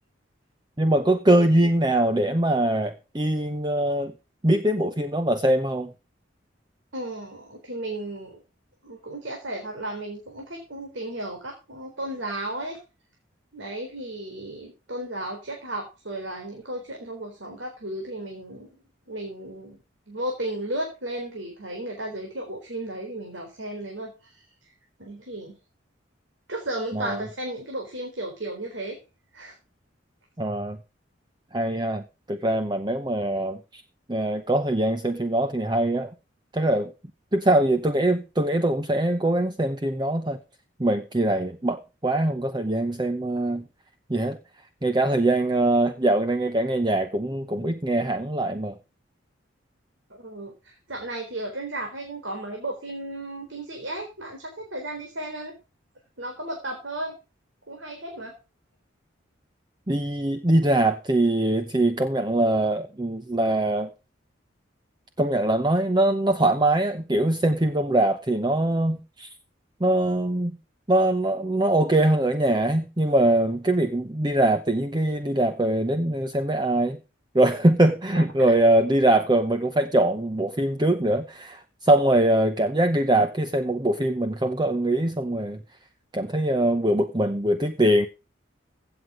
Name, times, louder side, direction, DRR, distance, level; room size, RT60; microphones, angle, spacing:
voice 1, 0.8-4.1 4.4-5.9 26.9-27.2 30.4-30.8 31.5-32.0 32.3-33.8 34.1-36.1 36.5-36.9 37.3-40.4 40.8-43.6 44.1-44.4 44.8-48.7 59.9-63.9 65.2-69.3 69.8-70.6 70.9-77.0 77.3-85.6 86.1-88.1, right 1 dB, 20° right, 0.8 m, -22 dB
voice 2, 6.9-8.4 8.8-12.8 13.5-18.8 19.1-19.8 20.1-24.7 25.0-25.6 26.5-29.0 29.3-29.5 50.2-55.5 56.2-57.2 57.7-58.3 78.1-78.5, right 1 dB, 70° right, 4.1 m, -34 dB
16.0 x 7.8 x 5.0 m
head